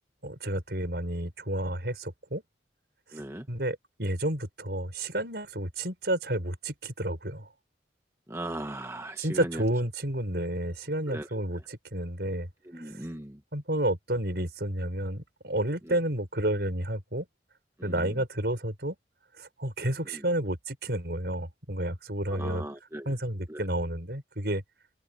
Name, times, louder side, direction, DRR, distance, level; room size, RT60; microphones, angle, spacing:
voice 1, 0.2-2.4 3.5-7.5 9.2-12.5 12.8-12.9 13.5-17.2 17.8-19.0 19.4-22.6 23.1-24.6, right 1 dB, 60° right, 5.8 m, -31 dB
voice 2, 3.1-3.5 8.3-9.6 11.1-11.4 12.6-13.4 15.8-16.0 17.8-18.2 20.0-20.2 22.3-23.1 23.5-23.7, right 1 dB, 15° right, 1.1 m, -38 dB
open air
head